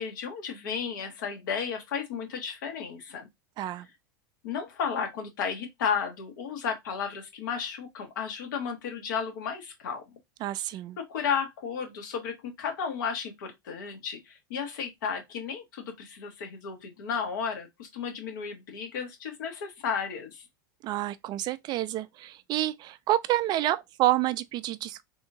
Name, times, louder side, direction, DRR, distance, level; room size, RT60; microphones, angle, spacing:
voice 1, 0.0-3.3 4.4-10.0 11.0-20.4, left 6 dB, 70° left, 1.4 m, -33 dB
voice 2, 10.4-11.0 20.8-25.0, right 15 dB, 40° right, 0.4 m, -28 dB
3.5 x 2.7 x 2.6 m
hypercardioid pair, 90°, 11 cm